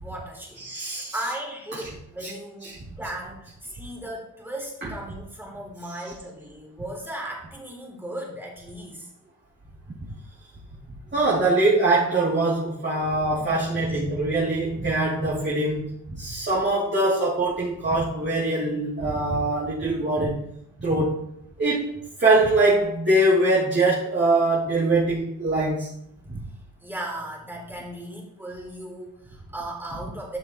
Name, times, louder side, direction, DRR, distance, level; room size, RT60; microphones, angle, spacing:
voice 1, 0.0-9.1 13.3-13.6 26.3-26.4 26.8-30.4, right 1 dB, 5° right, -2 dB, 3.4 m, -37 dB
voice 2, 0.6-1.2 2.2-2.3 2.6-2.7 4.8-4.9 5.9-6.0 10.9-20.4 20.8-21.2 21.6-21.9 22.2-25.9 26.3-26.4, right 2 dB, 30° right, -8 dB, 2.9 m, -23 dB
12.5 x 6.7 x 3.1 m, 0.77 s
cardioid pair, 95°, 35 cm